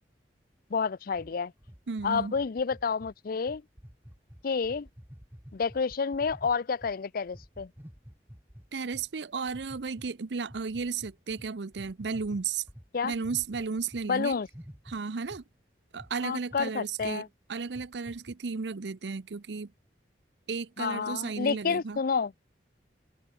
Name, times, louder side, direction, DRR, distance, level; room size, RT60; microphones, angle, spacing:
voice 1, 0.7-1.5 2.0-3.6 4.4-4.9 5.5-7.7 12.9-13.1 14.1-14.5 16.2-17.3 20.8-22.3, left 5 dB, 55° left, 0.5 m, -29 dB
sound 1, 1.1-6.9 7.3-9.1 9.5-10.1 10.5-14.1 14.3-15.5 16.0-16.1 16.5-16.7 17.0-17.1 17.6-18.4, equal, 10° right, 3.2 m, -50 dB
voice 2, 1.9-2.4 8.7-12.6 13.0-14.3 14.9-15.4 15.9-19.7 20.5-22.0, right 5 dB, 75° right, 0.7 m, -34 dB
head